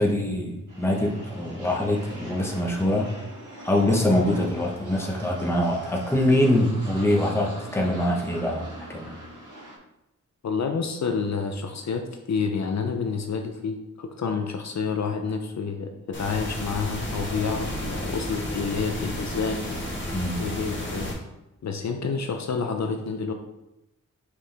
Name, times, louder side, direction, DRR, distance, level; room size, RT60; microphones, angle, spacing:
voice 1, 0.0-3.1 3.6-9.1 20.1-20.4, left 1 dB, 10° left, -1 dB, 1.0 m, -24 dB
sound 1, 0.7-9.8, right 1 dB, 75° right, 1.9 m, -42 dB
voice 2, 10.4-12.0 12.3-19.6 20.4-21.1 21.6-23.3, left 5 dB, 60° left, 4 dB, 0.6 m, -29 dB
sound 2, 16.1-21.1, left 1 dB, 40° left, 1.5 m, -32 dB
5.9 x 4.8 x 3.4 m, 0.93 s
wide cardioid pair, 140°, 31 cm